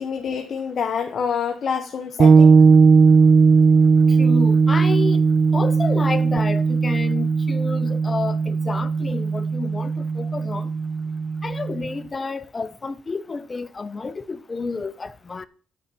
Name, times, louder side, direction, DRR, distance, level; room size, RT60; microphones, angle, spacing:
voice 1, 0.0-2.6, left 7 dB, 55° left, 1.1 m, -27 dB
sound 1, 2.2-11.9, right 5 dB, 45° right, 0.5 m, -17 dB
voice 2, 4.2-5.2 5.5-10.7 11.4-15.5, left 4 dB, 30° left, 0.8 m, -30 dB
8.9 x 4.1 x 7.2 m
cardioid pair, 90°, 0 cm